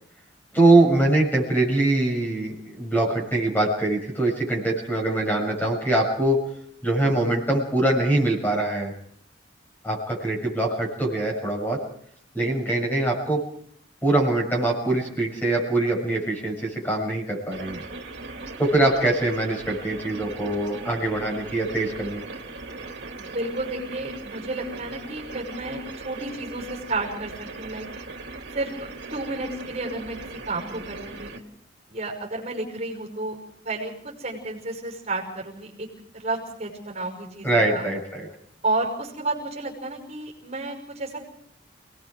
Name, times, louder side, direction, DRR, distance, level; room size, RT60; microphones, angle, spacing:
voice 1, 0.5-6.4 6.8-8.9 9.8-11.8 12.3-13.4 14.0-17.8 18.6-22.2 37.4-38.3, right 2 dB, 10° left, -1 dB, 7.0 m, -23 dB
voice 2, 12.4-12.8 23.2-27.3 27.6-27.9 28.5-28.7 29.1-30.2 30.4-31.4 31.9-33.4 33.6-35.9 36.1-37.9 38.6-41.2, right 2 dB, 35° right, 1 dB, 5.7 m, -31 dB
sound 1, 17.5-31.4, right 3 dB, 65° right, 2.7 m, -39 dB
30.0 x 19.0 x 4.9 m, 0.66 s
head